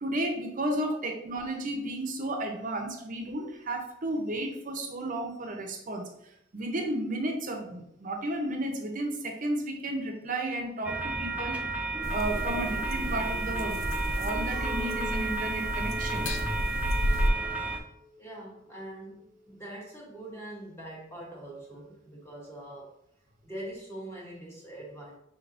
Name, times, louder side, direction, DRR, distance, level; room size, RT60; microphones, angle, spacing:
voice 1, 0.0-6.1 6.5-10.9 11.2-11.6 12.1-13.8 14.2-16.3, right 1 dB, 45° right, 3 dB, 0.6 m, -33 dB
sound 1, 10.8-17.8, right 3 dB, 5° right, 0.3 m, -32 dB
sound 2, 12.0-17.3, equal, 85° left, 0.5 m, -32 dB
Chink clink, 14.5-20.0, equal, 45° left, 0.7 m, -46 dB
voice 2, 18.2-22.9 23.4-25.2, right 1 dB, 15° left, -3 dB, 1.0 m, -43 dB
4.5 x 3.4 x 2.5 m, 0.75 s
head